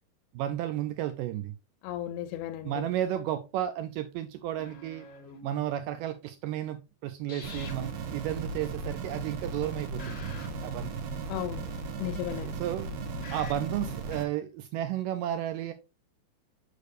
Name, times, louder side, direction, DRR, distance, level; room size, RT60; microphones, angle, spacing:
voice 1, 0.3-1.5 2.6-5.1 5.4-10.9 12.4-12.9 13.3-15.7, right 12 dB, 90° right, 1.9 m, -33 dB
voice 2, 1.8-2.9 11.3-11.7 12.0-12.6, left 12 dB, 85° left, 2.5 m, -35 dB
sound 1, 4.6-5.6 7.3-7.9 10.0-11.5 12.7-14.3, left 4 dB, 65° left, 1.1 m, -47 dB
sound 2, 7.4-14.2, right 4 dB, 70° right, 2.6 m, -36 dB
6.6 x 6.4 x 2.6 m
omnidirectional pair, 4.5 m